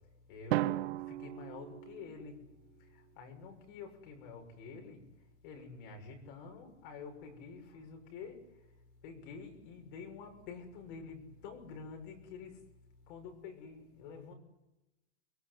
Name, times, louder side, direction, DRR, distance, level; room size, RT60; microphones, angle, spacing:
voice 1, 0.3-2.4 2.8-5.0 5.4-8.4 9.0-12.6 13.1-14.3, left 5 dB, 45° left, 4 dB, 6.6 m, -48 dB
Drum, 0.5-2.5, right 16 dB, 65° right, 0.9 m, -36 dB
24.0 x 23.0 x 9.7 m, 0.98 s
supercardioid pair, 175°, 34 cm